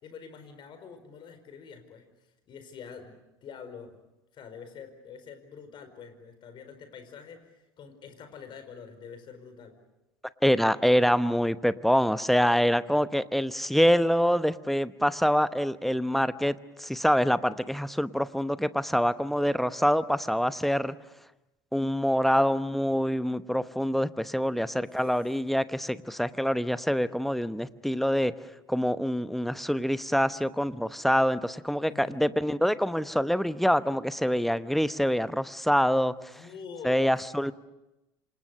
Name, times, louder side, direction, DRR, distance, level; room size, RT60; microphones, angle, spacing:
voice 1, 0.0-2.0 2.5-4.0 4.3-9.8 24.6-24.9 31.9-32.3 36.3-37.1, left 6 dB, 40° left, 9 dB, 4.8 m, -46 dB
voice 2, 10.4-21.0 21.7-28.3 28.7-36.1 36.8-37.5, equal, ahead, 14 dB, 0.9 m, -25 dB
27.0 x 27.0 x 6.6 m, 0.98 s
figure-of-eight pair, 75°, 12 cm